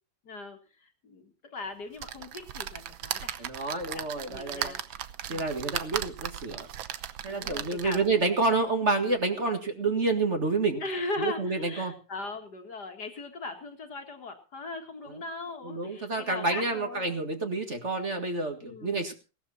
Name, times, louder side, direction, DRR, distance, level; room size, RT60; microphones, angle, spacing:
voice 1, 0.2-4.8 5.3-5.5 7.3-8.1 10.8-17.1 18.6-19.0, left 3 dB, 55° left, 5 dB, 2.5 m, -39 dB
sound 1, 2.0-8.2 8.8-8.9 9.1-9.2, right 11 dB, 80° right, 1.6 m, -37 dB
voice 2, 3.4-4.7 5.3-6.7 7.2-10.8 11.2-11.9 15.1-15.2 15.6-19.1, right 3 dB, 35° right, 5 dB, 2.1 m, -29 dB
18.0 x 12.5 x 4.2 m, 0.34 s
omnidirectional pair, 2.1 m